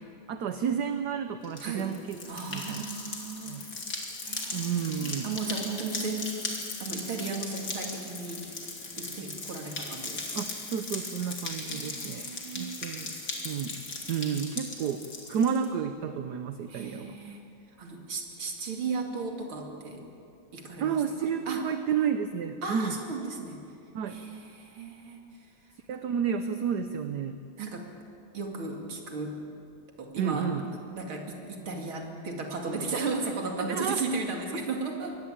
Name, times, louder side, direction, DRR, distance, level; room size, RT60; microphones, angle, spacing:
voice 1, 0.3-2.2 2.5-2.9 3.5-3.6 4.5-5.3 10.3-12.3 12.5-13.1 13.4-13.8 14.1-17.2 20.8-23.0 23.9-24.2 25.9-27.4 30.2-30.7 33.2-33.3 33.6-34.0, right 7 dB, 60° right, 9 dB, 1.3 m, -31 dB
sound 1, 1.4-15.7, left 3 dB, 50° left, 3.3 m, -38 dB
voice 2, 1.6-1.9 2.3-3.6 4.2-6.3 6.8-8.6 9.0-10.4 11.6-12.8 16.7-17.4 17.8-20.0 20.5-21.7 22.6-23.6 24.1-25.2 27.6-27.9 28.3-29.4 30.0-30.5 30.9-35.2, right 4 dB, 85° right, 2 dB, 3.4 m, -35 dB
23.5 x 18.5 x 8.7 m, 2.5 s
omnidirectional pair, 2.2 m